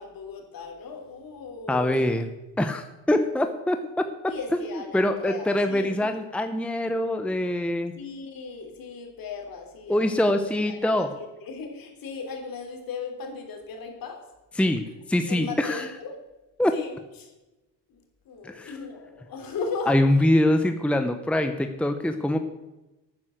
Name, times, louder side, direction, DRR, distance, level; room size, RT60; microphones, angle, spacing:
voice 1, 0.0-2.1 4.3-6.1 7.9-10.3 10.7-14.2 14.9-15.0 15.3-16.2 16.7-17.3 17.9-18.0 18.3-19.9 20.2-20.3, left 4 dB, 55° left, 3 dB, 3.6 m, -37 dB
voice 2, 1.7-2.3 2.6-4.1 4.9-7.9 9.9-11.1 14.6-14.8 15.1-15.9 16.6-16.8 18.4-18.7 19.9-22.4, left 1 dB, 5° left, 7 dB, 0.9 m, -24 dB
12.0 x 9.4 x 6.5 m, 1.0 s
supercardioid pair, 95°, 41 cm